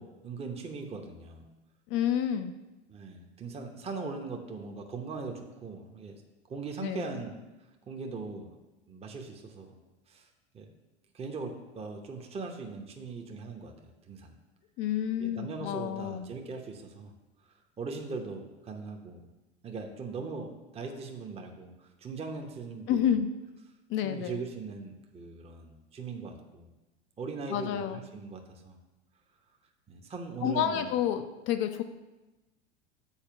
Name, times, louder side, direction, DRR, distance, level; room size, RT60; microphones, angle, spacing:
voice 1, 0.0-1.4 2.9-6.2 6.5-7.4 7.9-8.6 8.9-9.7 10.1-10.3 10.5-10.7 11.1-13.7 14.1-14.4 15.2-17.1 17.8-19.2 19.6-23.2 24.0-26.7 27.2-28.8 29.9-31.0, right 4 dB, 20° right, 3 dB, 0.8 m, -40 dB
voice 2, 1.9-2.5 6.8-7.1 14.8-16.3 22.9-23.3 23.9-24.4 27.5-28.0 30.4-31.8, left 10 dB, 40° left, 8 dB, 0.5 m, -29 dB
7.2 x 4.4 x 5.7 m, 1.1 s
figure-of-eight pair, 85°, 33 cm